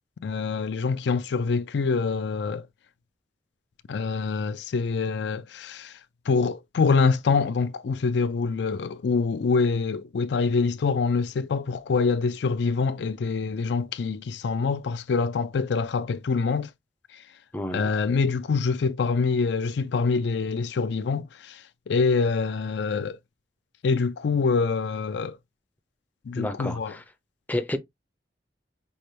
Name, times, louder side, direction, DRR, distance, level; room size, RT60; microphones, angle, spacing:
voice 1, 0.2-2.7 3.9-6.0 6.3-16.7 17.1-17.2 17.7-23.2 23.8-25.4 26.3-26.9, left 4 dB, 80° left, 0.4 m, -25 dB
voice 2, 17.5-17.9 26.4-27.0 27.5-27.8, left 1 dB, 10° left, 0.4 m, -30 dB
5.4 x 2.2 x 3.2 m
head